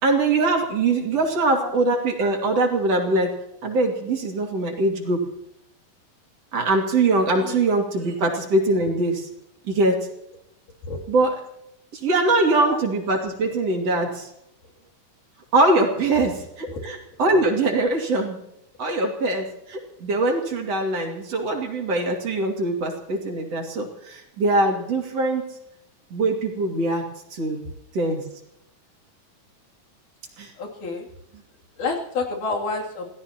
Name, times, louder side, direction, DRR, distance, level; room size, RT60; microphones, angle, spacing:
voice 1, 0.0-3.3 3.6-5.2 6.5-9.3 9.7-10.0 11.1-11.3 11.9-14.3 15.5-18.4 18.8-25.4 26.1-27.6 27.9-28.2 30.4-30.5, right 2 dB, 50° right, 1 dB, 3.5 m, -22 dB
voice 2, 12.4-12.8 16.7-16.9 30.6-31.1 31.8-33.1, left 3 dB, 70° left, 0 dB, 4.4 m, -29 dB
28.0 x 17.0 x 3.0 m, 0.79 s
omnidirectional pair, 3.8 m